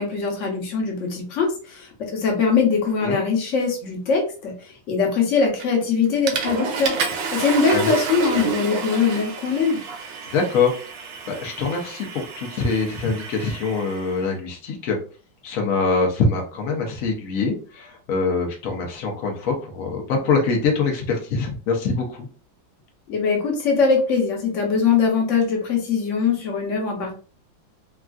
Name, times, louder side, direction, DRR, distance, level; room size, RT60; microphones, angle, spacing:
voice 1, 0.0-9.8 23.1-27.1, left 5 dB, 55° left, 1 dB, 0.8 m, -22 dB
Water / Toilet flush, 5.6-5.9 6.3-14.1, right 5 dB, 85° right, 1.4 m, -30 dB
voice 2, 10.3-15.0 15.4-22.3, left 4 dB, 90° left, 1 dB, 0.7 m, -24 dB
3.5 x 2.4 x 2.3 m, 0.38 s
omnidirectional pair, 2.2 m